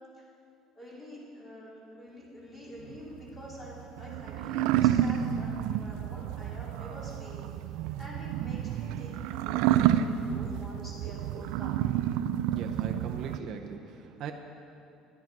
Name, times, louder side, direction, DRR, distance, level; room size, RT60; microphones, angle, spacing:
voice 1, 0.7-12.0, equal, 15° left, -5 dB, 3.0 m, -47 dB
sound 1, 2.9-13.4, right 11 dB, 85° right, 0.4 m, -29 dB
voice 2, 12.5-14.3, right 7 dB, 45° right, 3 dB, 0.7 m, -40 dB
11.5 x 11.0 x 5.9 m, 2.6 s
cardioid pair, 170°, 0 cm